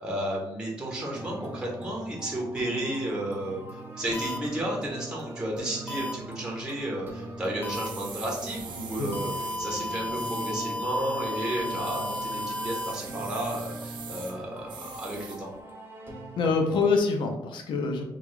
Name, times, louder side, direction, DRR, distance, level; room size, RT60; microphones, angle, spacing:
voice 1, 0.0-15.5, right 1 dB, 10° right, -2 dB, 1.0 m, -33 dB
sound 1, 1.1-17.0, right 2 dB, 25° right, 0.7 m, -41 dB
sound 2, 4.1-4.4 5.9-6.1 7.6-7.9 9.1-12.9, left 1 dB, 20° left, 0.4 m, -33 dB
sound 3, 7.5-15.6, right 6 dB, 75° right, 0.6 m, -44 dB
voice 2, 16.4-18.0, left 4 dB, 80° left, 4 dB, 0.6 m, -25 dB
3.4 x 2.3 x 3.2 m, 0.89 s
cardioid pair, 100°, 8 cm